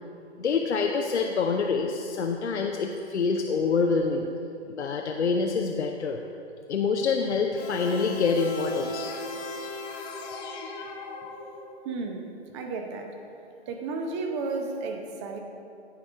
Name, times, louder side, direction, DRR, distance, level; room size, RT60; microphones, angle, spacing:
voice 1, 0.4-4.3 4.7-6.2 6.7-9.1, left 4 dB, 75° left, 3 dB, 0.7 m, -26 dB
sound 1, 7.6-11.9, left 2 dB, 15° left, 0.6 m, -37 dB
voice 2, 11.8-12.2 12.5-13.1 13.7-15.4, right 3 dB, 25° right, 4 dB, 0.7 m, -32 dB
14.5 x 4.9 x 3.5 m, 2.6 s
figure-of-eight pair, 130°, 34 cm